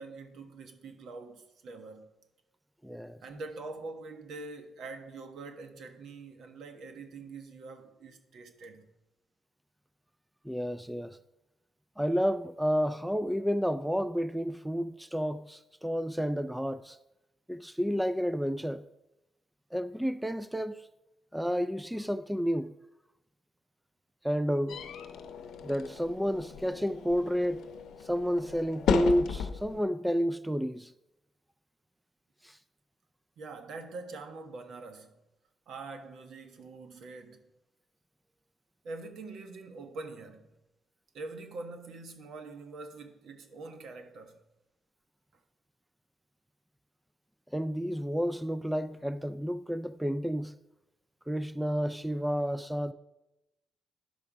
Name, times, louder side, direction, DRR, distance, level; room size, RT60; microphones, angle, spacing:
voice 1, 0.0-2.1 3.2-8.9 33.4-35.2 35.7-37.5 38.8-40.5 41.1-44.4, right 3 dB, 70° right, 1.2 m, -44 dB
voice 2, 2.8-3.2 10.4-11.2 12.0-17.0 17.5-18.8 19.7-20.9 21.3-22.7 24.2-24.8 25.6-27.6 28.0-30.9 32.4-32.6 47.5-50.5 51.3-52.9, equal, 5° right, 0.3 m, -30 dB
sound 1, 24.7-29.8, left 6 dB, 75° left, 0.7 m, -35 dB
10.5 x 5.0 x 6.0 m
cardioid pair, 90°, 0 cm